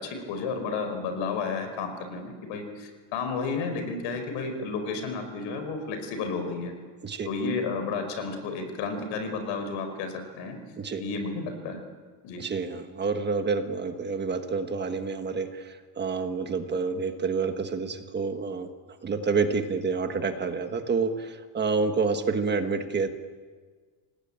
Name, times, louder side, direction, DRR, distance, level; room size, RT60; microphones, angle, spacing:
voice 1, 0.0-6.7 7.2-10.6 11.0-11.8 12.2-12.4, left 4 dB, 70° left, 7 dB, 5.0 m, -32 dB
voice 2, 12.4-23.1, right 4 dB, 20° right, 7 dB, 1.4 m, -28 dB
28.0 x 19.0 x 8.8 m, 1.5 s
cardioid pair, 170°, 47 cm